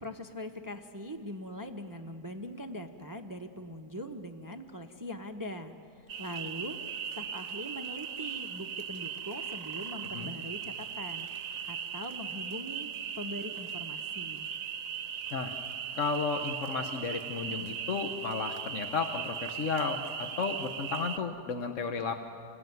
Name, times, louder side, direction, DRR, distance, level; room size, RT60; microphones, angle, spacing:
voice 1, 0.0-6.8 7.1-14.5, equal, 15° right, 6 dB, 0.8 m, -42 dB
sound 1, 6.1-21.2, right 8 dB, 60° right, 1.1 m, -38 dB
voice 2, 15.9-22.1, left 4 dB, 55° left, 6 dB, 1.3 m, -33 dB
27.0 x 20.5 x 9.4 m, 2.5 s
omnidirectional pair, 1.7 m